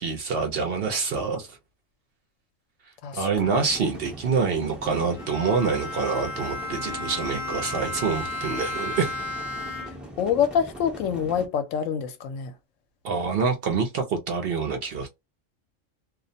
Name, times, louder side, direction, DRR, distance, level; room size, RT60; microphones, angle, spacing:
voice 1, 0.0-1.6 3.1-9.2 13.0-15.1, right 5 dB, 60° right, 0.7 m, -26 dB
sound 1, 3.4-11.5, right 1 dB, ahead, 0.4 m, -42 dB
Bowed string instrument, 5.1-10.2, left 2 dB, 55° left, 0.6 m, -33 dB
voice 2, 10.2-12.5, left 8 dB, 80° left, 1.0 m, -25 dB
2.4 x 2.0 x 2.6 m
omnidirectional pair, 1.3 m